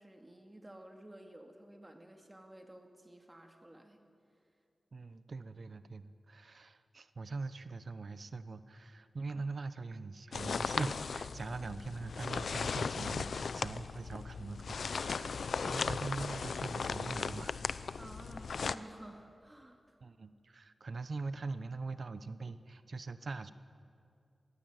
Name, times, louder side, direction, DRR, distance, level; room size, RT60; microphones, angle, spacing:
voice 1, 0.0-4.0 18.0-19.8, right 1 dB, 15° right, 4 dB, 2.5 m, -53 dB
voice 2, 4.9-17.6 20.0-23.5, right 3 dB, 60° right, 13 dB, 0.9 m, -42 dB
sound 1, 10.3-18.7, left 5 dB, 80° left, 0.6 m, -37 dB
22.5 x 15.5 x 9.4 m, 2.4 s
wide cardioid pair, 95°, 0 cm